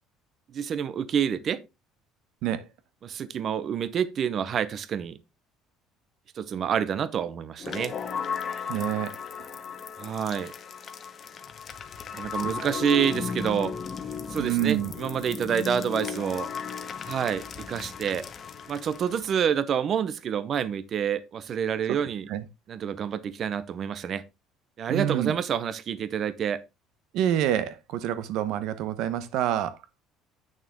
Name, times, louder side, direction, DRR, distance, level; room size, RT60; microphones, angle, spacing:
voice 1, 0.5-1.6 3.0-5.2 6.4-7.9 10.0-10.5 12.1-13.7 14.3-16.5 17.0-18.3 18.7-22.3 22.7-24.3 24.8-26.6, right 8 dB, 40° right, 0.7 m, -28 dB
sound 1, 7.6-19.5, left 6 dB, 30° left, 0.9 m, -36 dB
voice 2, 8.7-9.5 14.4-14.9 21.9-22.0 22.3-22.4 24.9-25.3 27.1-29.8, right 11 dB, 70° right, 0.9 m, -27 dB
8.9 x 6.4 x 3.6 m
cardioid pair, 145°, 0 cm